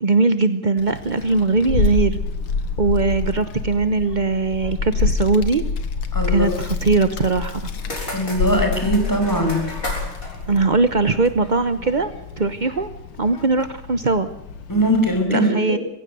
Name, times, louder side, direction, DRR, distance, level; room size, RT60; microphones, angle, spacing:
voice 1, 0.0-2.2 2.8-5.6 6.3-7.6 10.5-12.9 13.2-14.3 15.3-15.8, right 3 dB, 55° right, 12 dB, 0.5 m, -20 dB
Child speech kid speaking, 0.8-15.2, left 4 dB, 80° left, 2.6 m, -28 dB
voice 2, 6.1-6.5 8.1-9.6 14.7-15.8, equal, 10° left, 3 dB, 5.8 m, -20 dB
sound 1, 7.4-11.6, left 1 dB, 40° left, 7.4 m, -35 dB
23.5 x 16.0 x 7.9 m, 0.77 s
omnidirectional pair, 2.3 m